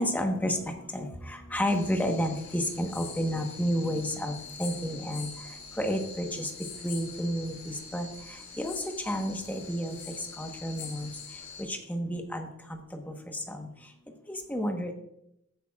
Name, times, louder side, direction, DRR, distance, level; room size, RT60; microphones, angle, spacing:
voice 1, 0.0-5.3 5.8-6.5 6.8-8.1 8.6-10.0 10.4-11.1 11.7-13.7 14.3-14.9, equal, 10° left, 3 dB, 1.1 m, -31 dB
sound 1, 1.7-11.6, left 5 dB, 60° left, 2.1 m, -44 dB
15.0 x 8.6 x 2.4 m, 0.79 s
head